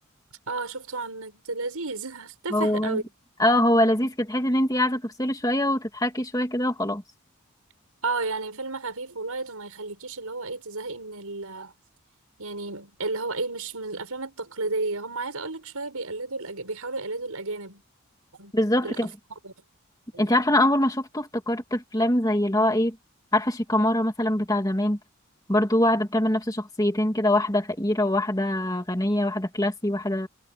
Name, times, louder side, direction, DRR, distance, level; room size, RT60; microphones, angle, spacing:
voice 1, 0.5-3.0 8.0-11.7 12.4-17.8 18.4-18.5 18.8-19.1 19.4-19.5 20.1-20.3, right 3 dB, 80° right, 5.4 m, -32 dB
voice 2, 2.5-3.0 3.4-7.0 18.5-19.1 20.2-23.0 23.3-25.0 25.5-30.3, left 1 dB, 15° left, 2.4 m, -23 dB
head